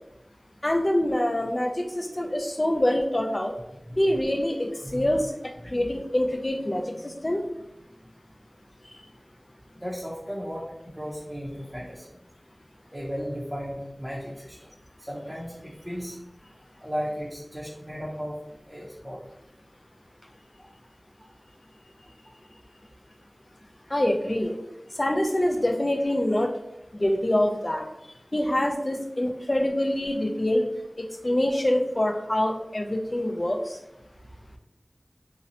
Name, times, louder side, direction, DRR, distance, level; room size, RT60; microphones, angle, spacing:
voice 1, 0.6-3.5 4.0-5.3 5.7-7.5 23.9-24.6 25.0-26.5 26.9-27.8 28.3-30.6 31.0-33.8, left 1 dB, 40° left, 3 dB, 0.3 m, -25 dB
voice 2, 3.9-4.2 4.8-5.2 9.8-12.0 12.9-14.6 15.0-16.2 16.8-18.4 18.7-19.2 20.6-20.7 21.2-21.3 22.2-22.3, equal, 15° right, -6 dB, 0.6 m, -35 dB
2.7 x 2.0 x 2.6 m, 0.86 s
wide cardioid pair, 45°, 0 cm